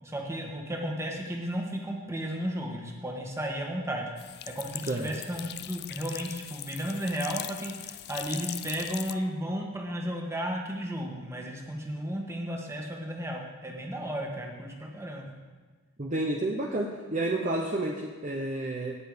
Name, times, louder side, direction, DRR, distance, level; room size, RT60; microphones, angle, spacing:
voice 1, 0.0-4.1 4.5-15.3, equal, 15° right, 0 dB, 1.7 m, -34 dB
sound 1, 4.2-9.1, left 13 dB, 50° left, 0.4 m, -40 dB
voice 2, 16.0-19.0, right 2 dB, 35° right, 0 dB, 0.9 m, -30 dB
17.5 x 6.9 x 5.2 m, 1.4 s
head